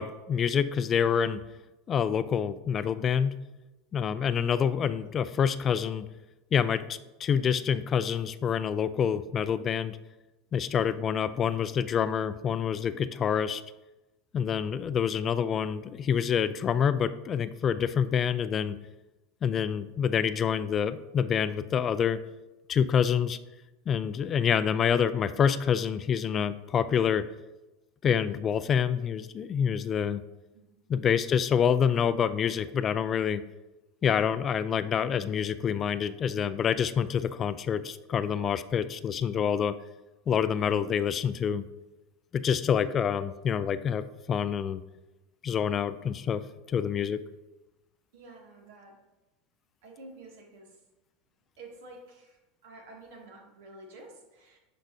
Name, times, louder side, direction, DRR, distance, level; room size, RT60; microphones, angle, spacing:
voice 1, 0.0-1.4 1.9-3.3 3.9-6.1 6.5-10.0 10.5-13.6 14.3-18.8 19.4-22.2 22.7-23.4 23.9-27.2 28.0-30.2 30.9-33.4 34.0-39.8 40.3-41.6 42.3-44.8 45.4-46.4 46.7-47.2, left 7 dB, 30° left, 13 dB, 0.3 m, -27 dB
voice 2, 48.1-49.0 49.8-50.8 51.6-54.6, right 2 dB, 85° right, -1 dB, 2.2 m, -50 dB
10.5 x 5.4 x 2.7 m, 1.0 s
supercardioid pair, 130°, 0 cm